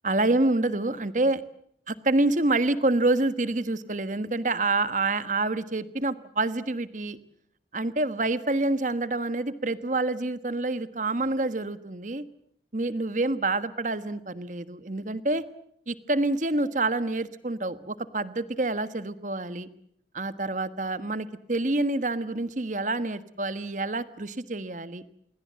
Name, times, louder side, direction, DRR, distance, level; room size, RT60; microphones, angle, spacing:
voice 1, 0.0-1.4 1.9-7.2 7.7-12.2 12.7-15.4 15.9-19.7 20.1-25.0, right 2 dB, 45° right, 13 dB, 1.3 m, -27 dB
28.0 x 22.5 x 7.6 m, 0.71 s
head